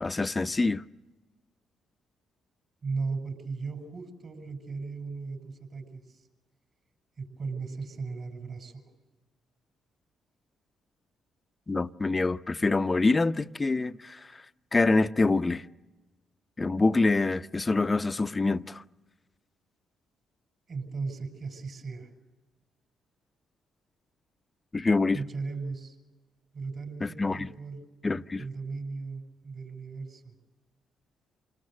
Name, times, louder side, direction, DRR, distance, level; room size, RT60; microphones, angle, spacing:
voice 1, 0.0-0.8 11.7-14.2 14.7-15.6 16.6-18.8 24.7-25.2 27.0-27.5 28.0-28.4, left 3 dB, 25° left, 0.8 m, -25 dB
voice 2, 2.8-6.2 7.2-8.8 20.7-22.1 25.1-26.0 26.5-27.9 28.4-30.3, right 4 dB, 50° right, 6.3 m, -37 dB
28.0 x 19.0 x 7.9 m
supercardioid pair, 65°, 0 cm